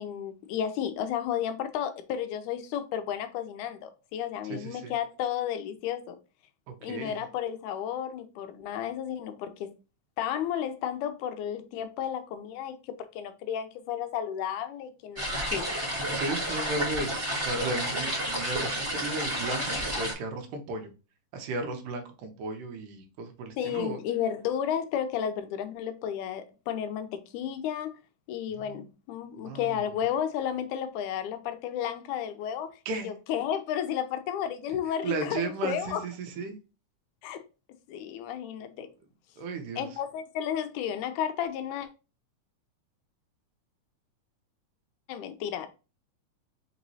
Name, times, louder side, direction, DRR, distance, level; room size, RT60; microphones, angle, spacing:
voice 1, 0.0-6.2 6.8-9.7 10.2-15.6 23.6-28.0 28.3-32.7 33.0-36.0 37.2-37.4 37.9-38.9 39.8-41.9 45.1-45.7, left 9 dB, 80° left, 1.9 m, -32 dB
voice 2, 4.4-4.9 6.7-7.2 16.1-20.9 21.3-24.0 28.5-28.8 29.4-29.9 32.9-33.1 34.9-36.6 39.4-40.0, right 3 dB, 80° right, 2.3 m, -35 dB
sound 1, 15.2-20.1, equal, 35° right, 1.1 m, -31 dB
5.3 x 3.0 x 2.7 m
omnidirectional pair, 3.8 m